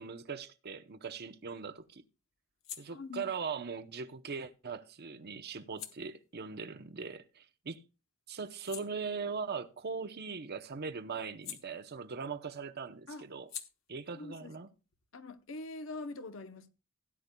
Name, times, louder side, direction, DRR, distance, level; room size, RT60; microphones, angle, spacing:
voice 1, 0.0-2.0 2.8-7.8 8.3-13.5 13.9-14.7, right 5 dB, 50° right, 0.7 m, -40 dB
sound 1, 0.9-7.7 8.1-12.4 12.6-16.0, left 10 dB, 90° left, 1.2 m, -53 dB
voice 2, 2.9-3.3 13.1-13.3 14.1-14.5 15.1-16.7, left 3 dB, 70° left, 0.8 m, -43 dB
17.0 x 9.6 x 2.2 m
head